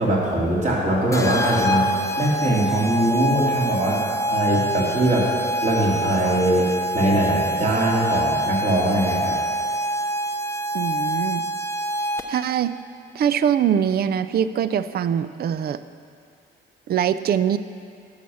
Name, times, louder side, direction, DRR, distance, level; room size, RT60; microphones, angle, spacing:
voice 1, 0.0-5.4 5.6-6.7 6.9-9.4, right 1 dB, 35° right, -4 dB, 2.7 m, -21 dB
sound 1, 1.1-12.5, right 1 dB, 15° left, 0.7 m, -26 dB
voice 2, 10.7-11.4 12.3-12.7 13.1-15.8 16.9-17.6, right 9 dB, 50° right, 14 dB, 0.4 m, -22 dB
11.5 x 5.6 x 6.3 m, 2.4 s
cardioid pair, 90°, 20 cm